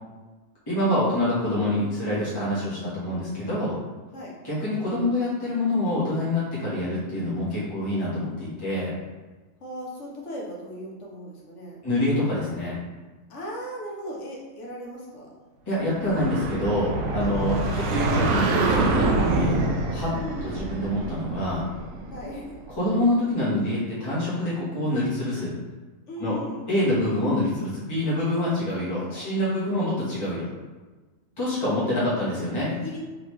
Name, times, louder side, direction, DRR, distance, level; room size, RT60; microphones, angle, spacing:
voice 1, 0.7-3.8 4.4-8.9 11.8-12.7 15.7-19.6 19.9-20.1 20.4-21.6 22.8-25.5 26.2-26.3 26.7-30.5 31.4-32.7, left 1 dB, 20° left, -10 dB, 1.1 m, -26 dB
voice 2, 9.6-11.8 13.3-15.3 17.2-17.7 20.1-20.6 22.1-22.5 26.1-26.7 29.0-29.4 29.7-30.0 31.7-32.1 32.7-33.0, equal, 65° left, -3 dB, 1.2 m, -38 dB
sound 1, 16.0-22.6, right 3 dB, 80° right, 1.0 m, -26 dB
3.9 x 3.3 x 3.1 m, 1.3 s
omnidirectional pair, 1.4 m